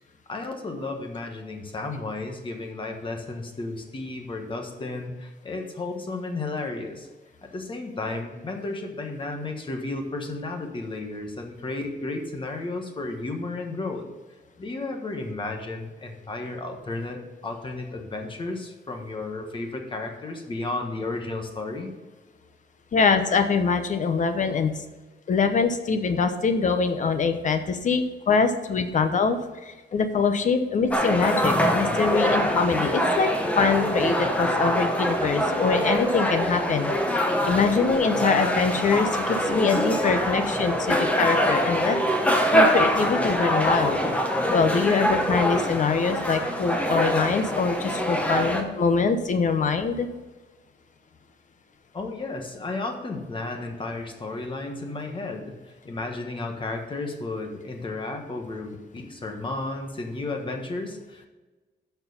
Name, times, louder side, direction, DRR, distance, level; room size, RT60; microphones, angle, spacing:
voice 1, 0.3-7.1 7.4-14.1 14.6-21.9 51.9-61.3, left 2 dB, 30° left, 3 dB, 1.3 m, -33 dB
voice 2, 22.9-24.7 25.3-29.4 29.7-33.3 33.6-36.9 37.5-42.0 42.5-44.0 44.5-50.1, left 5 dB, 45° left, 8 dB, 0.9 m, -24 dB
sound 1, 30.9-48.6, equal, 10° left, 1.0 m, -24 dB
13.0 x 4.6 x 5.4 m, 1.2 s
wide cardioid pair, 175°, 17 cm